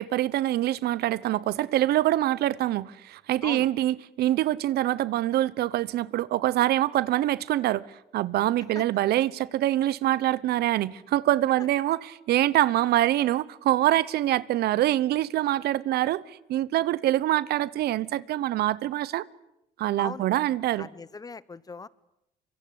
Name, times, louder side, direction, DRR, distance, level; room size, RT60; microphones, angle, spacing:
voice 1, 0.0-16.2 16.5-19.3 19.8-20.9, right 14 dB, 70° right, 1.0 m, -25 dB
voice 2, 20.8-21.9, left 4 dB, 20° left, 1.0 m, -39 dB
25.0 x 23.5 x 9.5 m
cardioid pair, 110°, 17 cm